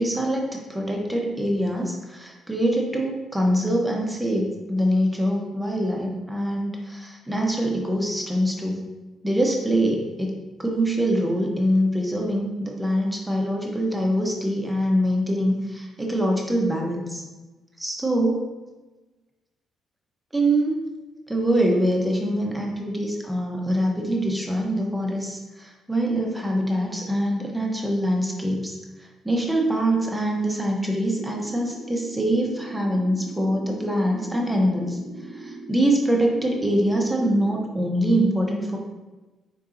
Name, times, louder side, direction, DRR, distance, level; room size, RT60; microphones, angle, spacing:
voice 1, 0.0-8.8 9.2-17.2 17.8-18.4 20.3-20.8 21.3-28.8 29.2-35.0 35.3-38.8, right 1 dB, 10° right, 0 dB, 0.8 m, -24 dB
sound 1, 31.1-37.7, right 2 dB, 85° right, 0.6 m, -40 dB
4.7 x 2.7 x 3.7 m, 1.2 s
cardioid pair, 90°, 0 cm